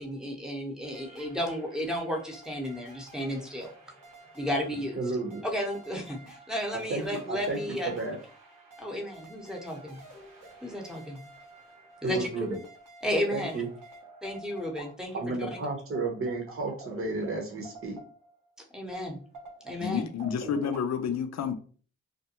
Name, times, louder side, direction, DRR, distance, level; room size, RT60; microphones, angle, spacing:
voice 1, 0.0-3.7 4.3-5.0 5.4-7.9 8.8-10.0 10.6-11.2 12.0-12.5 13.0-13.6 14.2-15.5 18.7-19.2 19.6-20.1, equal, ahead, 0.9 m, -33 dB
sound 1, 0.8-18.5 18.9-20.8, right 2 dB, 80° right, 0.9 m, -49 dB
voice 2, 5.0-5.4 6.7-8.2 12.0-12.6 13.3-13.7 15.1-18.0, right 3 dB, 45° right, 0.9 m, -32 dB
voice 3, 19.8-21.5, left 7 dB, 55° left, 0.5 m, -30 dB
2.5 x 2.2 x 2.8 m
cardioid pair, 45°, 31 cm